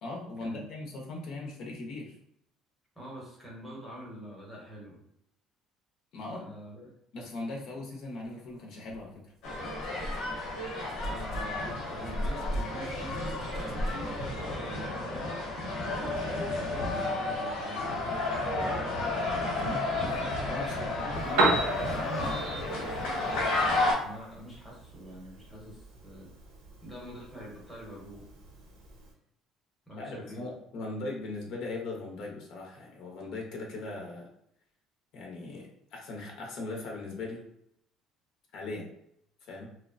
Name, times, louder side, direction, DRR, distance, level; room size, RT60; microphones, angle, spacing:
voice 1, 0.0-2.1 6.1-6.4 7.1-9.2 19.6-21.1 30.0-34.3 35.1-37.4 38.5-38.9 39.5-39.7, left 2 dB, 55° left, -1 dB, 0.6 m, -39 dB
voice 2, 3.0-5.0 6.3-6.9 11.0-15.4 15.9-18.8 19.8-20.1 20.6-21.4 21.8-26.3 26.8-28.3 29.9-30.4, right 1 dB, 5° right, -5 dB, 0.8 m, -45 dB
sound 1, 8.9-9.0 9.4-14.5, equal, 45° right, 0.5 m, -38 dB
sound 2, 9.4-23.9, left 2 dB, 90° left, 1.0 m, -32 dB
Piano, 21.1-29.1, right 2 dB, 90° right, 0.6 m, -35 dB
2.8 x 2.0 x 2.5 m, 0.75 s
cardioid pair, 170°, 0 cm